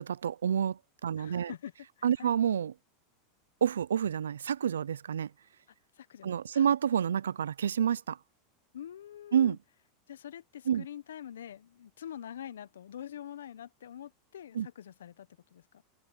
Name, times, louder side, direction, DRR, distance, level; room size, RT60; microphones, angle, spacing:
voice 1, 0.0-1.5 2.0-2.7 3.6-5.3 6.2-8.2 9.3-9.6 10.7-10.9 14.5-14.7, right 8 dB, 85° right, 0.5 m, -28 dB
voice 2, 1.2-1.7 2.0-2.3 6.0-6.7 8.7-9.6 10.1-15.8, left 10 dB, 80° left, 1.0 m, -45 dB
open air
hypercardioid pair, 90°, 0 cm